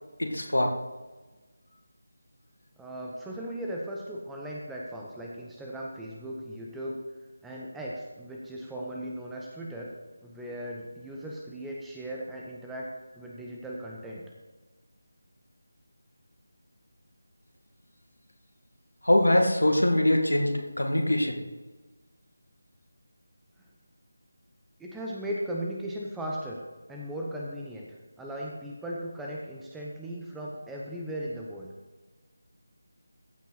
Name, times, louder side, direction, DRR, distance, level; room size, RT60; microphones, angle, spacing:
voice 1, 0.2-0.8 19.0-21.4, left 1 dB, 75° left, 2 dB, 2.0 m, -23 dB
voice 2, 2.8-7.0 7.4-9.9 10.2-14.3 24.8-26.6 26.9-31.7, right 1 dB, 5° right, -3 dB, 0.8 m, -37 dB
14.5 x 5.9 x 4.2 m, 1.2 s
figure-of-eight pair, 160°, 0 cm